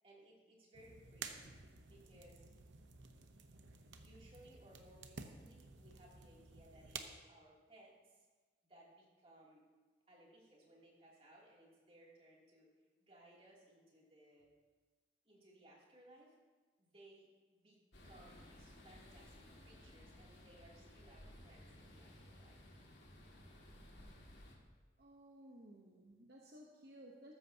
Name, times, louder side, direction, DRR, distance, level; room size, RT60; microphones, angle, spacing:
voice 1, 0.0-1.5 1.9-2.4 3.9-8.3 8.7-9.6 10.1-14.5 15.2-16.4 16.8-17.8 18.0-22.6, right 1 dB, 30° right, -4 dB, 2.9 m, -63 dB
sound 1, 0.7-7.0, right 5 dB, 85° right, 0.9 m, -53 dB
sound 2, 17.9-24.6, left 1 dB, 70° left, 2.2 m, -58 dB
voice 2, 25.0-27.3, right 1 dB, 55° right, -1 dB, 1.1 m, -57 dB
14.5 x 13.0 x 2.9 m, 1.3 s
head